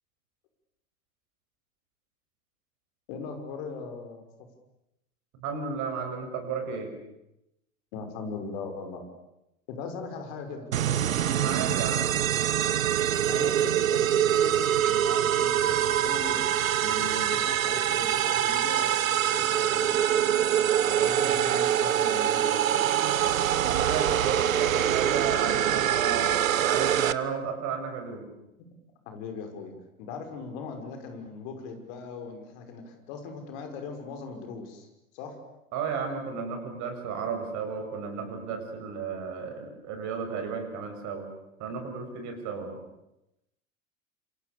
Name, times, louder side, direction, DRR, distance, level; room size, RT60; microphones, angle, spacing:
voice 1, 3.1-4.3 7.9-9.0 9.7-10.7 13.3-16.5 16.8-18.9 19.3-20.3 20.8-22.9 29.1-29.7 30.0-34.9 35.1-35.4, left 4 dB, 50° left, 5 dB, 6.1 m, -39 dB
voice 2, 5.4-6.9 11.3-12.1 23.6-28.3 35.7-41.3 41.6-42.8, right 6 dB, 40° right, 6 dB, 6.7 m, -33 dB
sound 1, 10.7-27.1, right 10 dB, 70° right, 1.2 m, -24 dB
27.5 x 27.5 x 7.0 m, 0.88 s
figure-of-eight pair, 85°, 42 cm